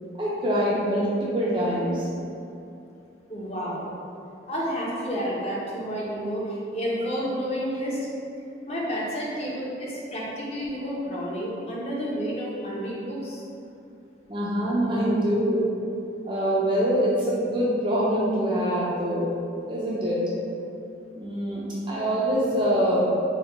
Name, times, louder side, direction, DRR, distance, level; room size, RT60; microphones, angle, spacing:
voice 1, 0.2-2.1 14.3-15.6 16.2-19.3 19.7-20.2 21.2-23.1, equal, 25° right, -6 dB, 0.4 m, -24 dB
voice 2, 3.3-3.8 4.5-8.0 8.7-13.4, equal, 35° left, -5 dB, 0.7 m, -30 dB
4.3 x 2.2 x 3.8 m, 2.6 s
head